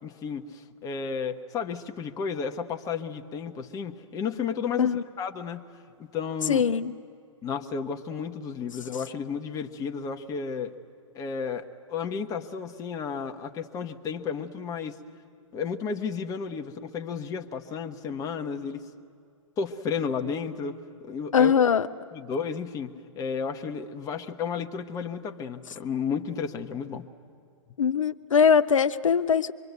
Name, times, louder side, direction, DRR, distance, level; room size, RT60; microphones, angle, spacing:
voice 1, 0.0-5.6 6.0-6.6 7.4-10.7 11.1-15.0 15.5-18.9 19.6-21.5 22.1-27.1, left 6 dB, 20° left, 5 dB, 1.1 m, -32 dB
voice 2, 6.5-6.9 21.3-21.9 27.8-29.5, left 7 dB, 80° left, 10 dB, 0.6 m, -21 dB
24.5 x 23.0 x 8.3 m, 2.3 s
hypercardioid pair, 120°, 16 cm